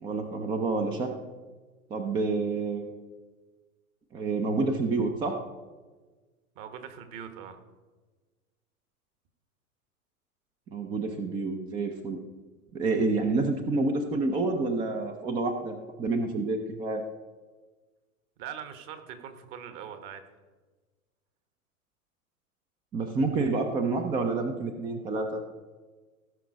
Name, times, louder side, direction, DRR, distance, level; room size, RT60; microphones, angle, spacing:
voice 1, 0.0-1.1 1.9-2.9 4.1-5.3 10.7-12.2 12.7-17.0 22.9-25.4, right 3 dB, 10° right, 5 dB, 0.4 m, -28 dB
voice 2, 6.5-7.6 18.4-20.2, right 8 dB, 40° right, 9 dB, 1.3 m, -41 dB
16.0 x 5.9 x 5.0 m, 1.3 s
figure-of-eight pair, 95°, 44 cm